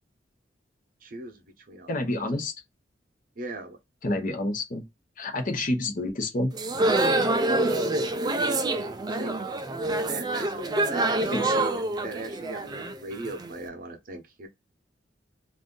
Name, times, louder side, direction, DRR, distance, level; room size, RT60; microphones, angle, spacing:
voice 1, 1.0-2.2 3.4-3.8 9.0-9.4 10.1-14.5, right 2 dB, 50° right, 0.8 m, -38 dB
voice 2, 1.9-2.5 4.0-4.8 5.2-6.5 11.2-11.6, left 1 dB, 45° left, 0.8 m, -28 dB
sound 1, 6.5-13.5, right 2 dB, 20° right, 0.3 m, -26 dB
2.6 x 2.4 x 3.6 m
head